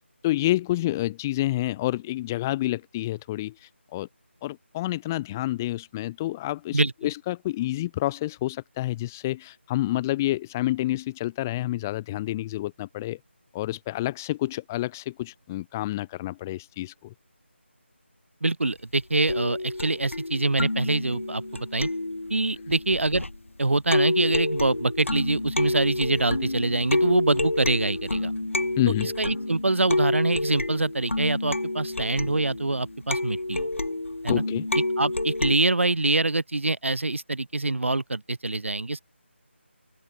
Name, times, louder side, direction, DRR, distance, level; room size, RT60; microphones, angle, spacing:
voice 1, 0.2-4.1 4.4-13.2 13.5-17.1 28.8-29.1 34.3-34.7, left 16 dB, 15° left, 1.2 m, -28 dB
voice 2, 18.4-21.4 21.7-21.9 22.3-23.2 23.6-28.3 29.0-33.7 34.2-34.4 34.7-39.0, right 2 dB, 80° right, 1.3 m, -25 dB
sound 1, 19.3-23.5 23.9-35.6, left 2 dB, 85° left, 2.9 m, -29 dB
figure-of-eight pair, 165°, 7 cm